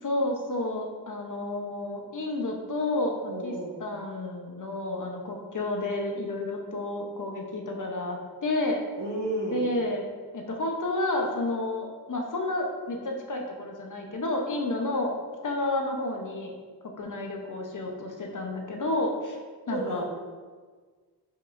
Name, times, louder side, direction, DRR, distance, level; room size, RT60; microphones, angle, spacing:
voice 1, 0.0-3.1 3.4-3.5 3.8-8.8 9.5-10.1 10.3-15.1 15.4-16.5 17.0-19.4 19.7-20.0, left 2 dB, 50° left, 1 dB, 0.9 m, -30 dB
voice 2, 3.3-3.8 9.0-9.6 19.7-20.1, right 2 dB, 90° right, -5 dB, 1.5 m, -32 dB
7.2 x 5.3 x 2.6 m, 1.5 s
wide cardioid pair, 115°, 40 cm